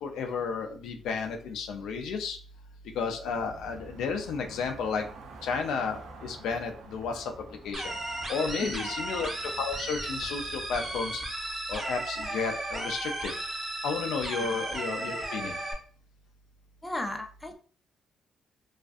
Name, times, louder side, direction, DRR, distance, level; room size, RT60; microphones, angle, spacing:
voice 1, 0.0-2.4 3.0-5.0 5.4-7.3 7.6-8.0 8.3-11.2 11.7-13.3 13.8-15.6, left 5 dB, 85° left, 4 dB, 0.4 m, -32 dB
sound 1, 3.3-11.3, right 3 dB, 75° right, 0.4 m, -49 dB
sound 2, 7.7-15.7, right 1 dB, 35° right, 0.7 m, -35 dB
voice 2, 16.8-17.6, left 1 dB, 10° left, 5 dB, 0.4 m, -34 dB
2.4 x 2.4 x 2.4 m, 0.42 s
cardioid pair, 90°, 0 cm